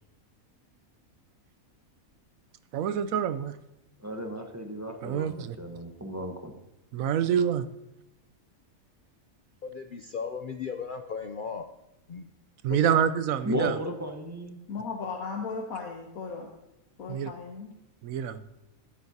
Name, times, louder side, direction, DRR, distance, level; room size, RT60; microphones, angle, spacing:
voice 1, 2.7-3.5 5.0-5.6 6.9-7.6 12.6-13.8 17.1-17.3 18.0-18.4, right 8 dB, 75° right, 13 dB, 1.1 m, -26 dB
voice 2, 4.0-6.5 13.4-14.6, equal, 15° right, 4 dB, 0.9 m, -34 dB
voice 3, 9.6-11.7 12.1-12.3 12.7-13.0, left 6 dB, 60° left, 7 dB, 0.5 m, -36 dB
voice 4, 14.7-16.5 17.0-17.7, left 4 dB, 80° left, 0 dB, 1.5 m, -36 dB
13.0 x 10.5 x 2.8 m, 0.92 s
omnidirectional pair, 1.5 m